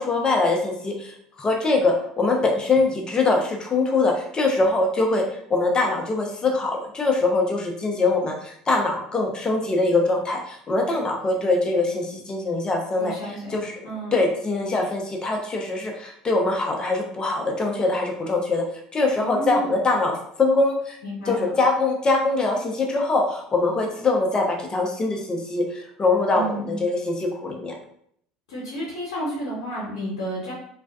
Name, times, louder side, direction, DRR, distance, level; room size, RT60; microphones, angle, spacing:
voice 1, 0.0-5.2 5.5-13.1 13.5-13.7 14.1-18.6 18.9-21.0 21.3-27.7, left 3 dB, 25° left, 1 dB, 0.6 m, -23 dB
voice 2, 12.9-13.5 13.8-14.2 19.2-19.7 21.0-21.5 26.3-26.7 28.5-30.5, right 1 dB, 85° left, -7 dB, 0.8 m, -31 dB
2.4 x 2.2 x 2.3 m, 0.67 s
hypercardioid pair, 75°, 3 cm